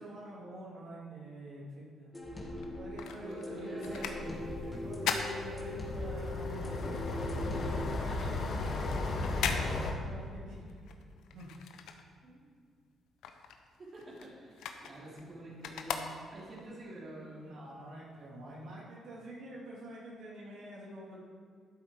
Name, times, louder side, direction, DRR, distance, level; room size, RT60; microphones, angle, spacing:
voice 1, 0.0-2.1 2.7-10.7 11.3-11.5 17.4-21.2, right 1 dB, 75° right, -6 dB, 2.9 m, -47 dB
sound 1, 2.1-7.9, left 1 dB, 20° left, 2.0 m, -41 dB
sound 2, 2.5-6.2 6.6-12.6 12.9-16.7 17.2-17.3, left 7 dB, 85° left, 0.9 m, -40 dB
voice 2, 3.2-4.2 8.1-8.4 10.7-10.8 12.2-12.5 13.8-17.5, right 1 dB, 40° right, -4 dB, 3.0 m, -47 dB
sound 3, 4.2-9.9, left 3 dB, 55° left, 1.5 m, -36 dB
12.5 x 7.6 x 4.9 m, 2.1 s
cardioid pair, 90°, 0 cm